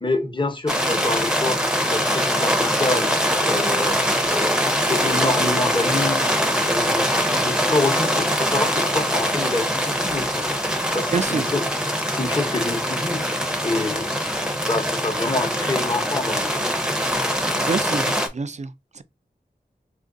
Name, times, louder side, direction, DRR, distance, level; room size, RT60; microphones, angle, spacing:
voice 1, 0.0-1.6 1.8-3.1 3.4-4.0 4.3-4.6 4.9-6.2 6.6-10.5 10.9-11.6 12.1-13.2 13.6-14.3 14.6-16.7, left 2 dB, 30° left, 0.9 m, -27 dB
sound 1, 0.7-18.3, equal, 5° right, 0.7 m, -23 dB
voice 2, 11.1-11.5 14.5-14.6 17.6-19.0, right 4 dB, 40° right, 0.4 m, -27 dB
3.0 x 2.5 x 3.7 m
wide cardioid pair, 50°, 17 cm